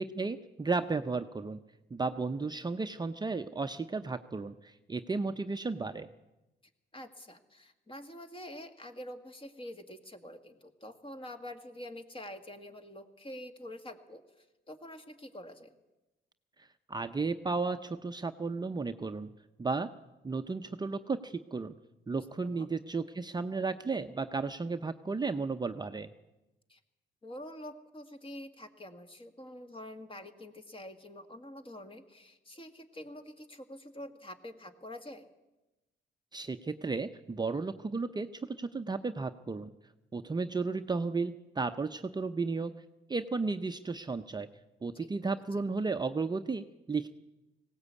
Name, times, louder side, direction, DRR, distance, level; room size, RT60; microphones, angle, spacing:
voice 1, 0.0-1.6 1.9-6.1 16.6-19.3 19.6-19.9 20.2-21.7 22.1-26.1 36.3-39.7 40.1-42.7 43.1-44.5 44.8-47.1, right 4 dB, 20° right, 8 dB, 0.7 m, -34 dB
voice 2, 6.9-15.7 22.1-22.7 26.7-26.8 27.2-35.3 45.0-45.1, left 1 dB, 25° left, 7 dB, 2.1 m, -46 dB
19.5 x 17.0 x 8.4 m, 1.0 s
cardioid pair, 90°, 20 cm